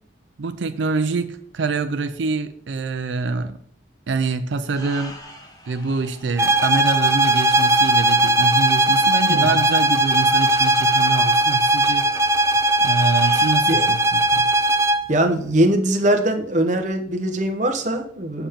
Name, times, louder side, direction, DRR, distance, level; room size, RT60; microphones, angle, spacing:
voice 1, 0.4-3.6 4.1-5.2 5.7-12.1 12.8-14.5, right 4 dB, 90° right, 10 dB, 0.5 m, -25 dB
sound 1, 4.7-13.6, left 1 dB, 20° left, 1.1 m, -43 dB
sound 2, 6.4-15.1, right 1 dB, 15° right, 0.3 m, -18 dB
voice 2, 9.3-9.6 13.7-13.9 15.1-18.5, right 1 dB, 40° right, 5 dB, 0.9 m, -21 dB
7.1 x 7.0 x 3.6 m, 0.63 s
head